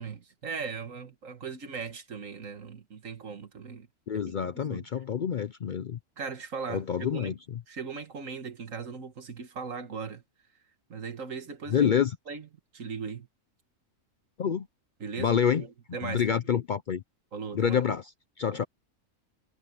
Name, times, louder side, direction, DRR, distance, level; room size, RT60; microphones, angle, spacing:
voice 1, 0.0-3.9 4.3-4.9 6.2-7.3 7.7-10.2 10.9-11.9 12.3-12.5 12.7-13.3 15.0-15.4 15.9-16.4 17.3-17.8 18.5-18.7, right 5 dB, 75° right, 2.0 m, -38 dB
voice 2, 4.1-6.0 6.7-7.6 11.7-12.2 14.4-14.7 15.2-15.6 16.0-17.0 17.5-18.1 18.4-18.6, left 8 dB, 55° left, 0.5 m, -27 dB
omnidirectional pair, 1.4 m